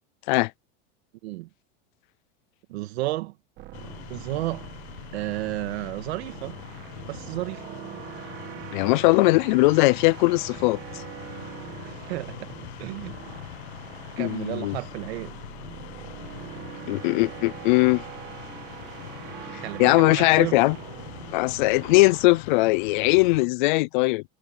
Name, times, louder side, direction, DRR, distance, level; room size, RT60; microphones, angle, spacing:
voice 1, 2.7-3.4 4.1-4.7 5.1-6.6 7.1-7.6 11.8-13.2 14.2-15.4 19.6-20.6, right 18 dB, 75° right, 1.8 m, -32 dB
sound 1, 3.6-22.4, right 15 dB, 30° right, 1.3 m, -43 dB
sound 2, 3.7-23.5, left 17 dB, 90° left, 1.3 m, -42 dB
voice 2, 8.7-10.8 14.2-14.7 16.9-18.0 19.5-20.8 21.3-24.2, left 23 dB, 50° left, 0.4 m, -20 dB
sound 3, 17.7-22.7, right 4 dB, 10° right, 2.2 m, -52 dB
supercardioid pair, 175°, 32 cm